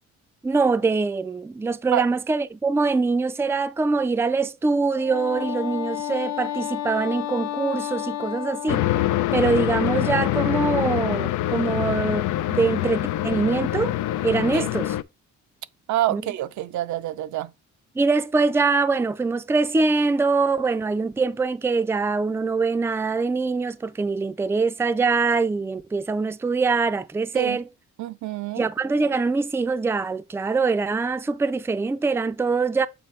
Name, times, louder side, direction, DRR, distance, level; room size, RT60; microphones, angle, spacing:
voice 1, 0.4-8.9 9.3-14.0 14.2-14.9 16.1-16.2 18.0-27.7 28.6-32.9, right 4 dB, 10° right, 0.4 m, -23 dB
Wind instrument woodwind instrument, 4.9-9.6, left 12 dB, 60° left, 0.9 m, -31 dB
sound 1, 8.7-15.0, left 14 dB, 85° left, 0.5 m, -25 dB
voice 2, 15.9-17.5 27.3-27.6 28.0-28.7, right 13 dB, 70° right, 0.5 m, -27 dB
6.9 x 4.3 x 3.2 m
cardioid pair, 90°, 30 cm